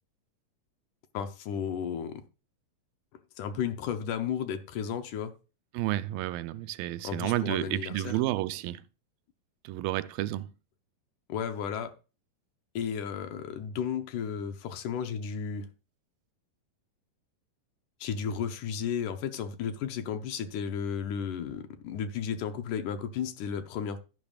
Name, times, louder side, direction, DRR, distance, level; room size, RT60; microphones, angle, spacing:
voice 1, 1.1-2.2 3.4-5.4 7.0-8.2 11.3-12.0 12.8-15.7 18.0-24.0, left 7 dB, 75° left, 2.2 m, -33 dB
voice 2, 5.7-8.8 9.6-10.5, right 15 dB, 90° right, 2.4 m, -31 dB
12.5 x 10.5 x 2.4 m
omnidirectional pair, 4.0 m